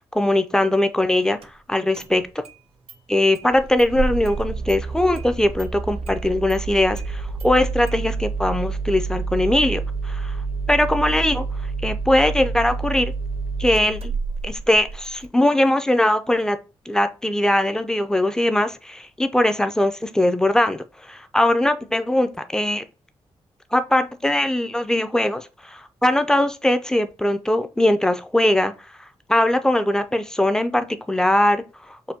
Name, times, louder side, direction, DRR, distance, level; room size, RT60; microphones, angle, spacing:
voice 1, 0.1-2.4 3.1-10.4 10.7-13.1 13.6-14.1 14.4-16.6 16.9-22.8 23.7-29.0 29.3-32.1, left 1 dB, 5° left, 0.5 m, -21 dB
Engine starting, 1.4-1.5 1.9-2.6 2.9-3.0 3.4-15.3, right 4 dB, 60° right, 0.6 m, -29 dB
5.6 x 2.2 x 2.8 m
cardioid pair, 60°, 11 cm